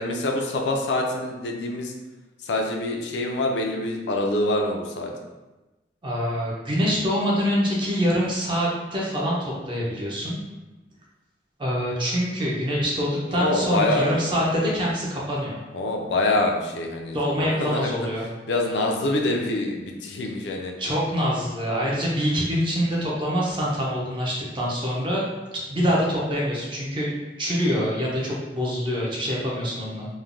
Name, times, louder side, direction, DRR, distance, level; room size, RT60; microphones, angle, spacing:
voice 1, 0.0-1.9 2.5-5.1 13.4-14.1 15.7-17.9 18.5-20.7, left 2 dB, 80° left, 2 dB, 0.4 m, -25 dB
voice 2, 6.0-10.4 11.6-15.6 17.1-18.3 20.8-25.3 25.7-30.1, equal, 25° right, -5 dB, 0.5 m, -25 dB
3.2 x 2.1 x 2.5 m, 1.1 s
head